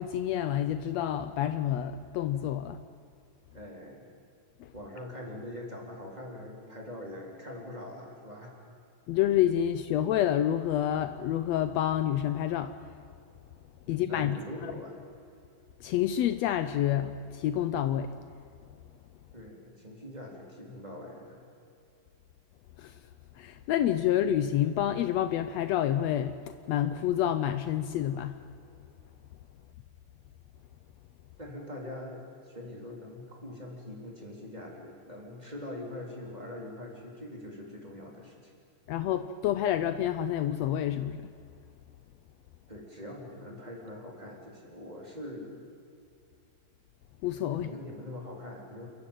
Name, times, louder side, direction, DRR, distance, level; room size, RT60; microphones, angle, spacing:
voice 1, 0.0-2.8 4.6-4.7 9.1-12.8 13.9-14.7 15.8-18.1 22.8-22.9 23.4-28.4 38.9-41.2 47.2-47.7, left 11 dB, 90° left, 1.5 m, -28 dB
voice 2, 3.5-4.0 4.7-8.5 13.8-15.0 19.3-21.4 31.4-38.5 42.7-45.6 47.5-48.9, left 1 dB, 10° right, 3.6 m, -43 dB
28.5 x 14.0 x 9.0 m
omnidirectional pair, 3.9 m